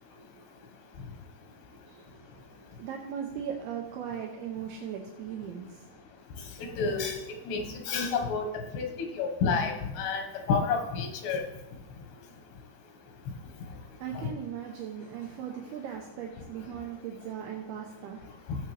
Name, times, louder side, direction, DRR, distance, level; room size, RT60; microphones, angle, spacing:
voice 1, 1.9-6.0 13.5-18.6, right 8 dB, 80° right, 1 dB, 2.8 m, -39 dB
voice 2, 6.6-7.2 7.5-8.9 9.1-11.4 14.1-14.3 18.5-18.6, left 5 dB, 85° left, 4 dB, 3.5 m, -30 dB
15.5 x 7.3 x 3.4 m, 1.0 s
omnidirectional pair, 4.6 m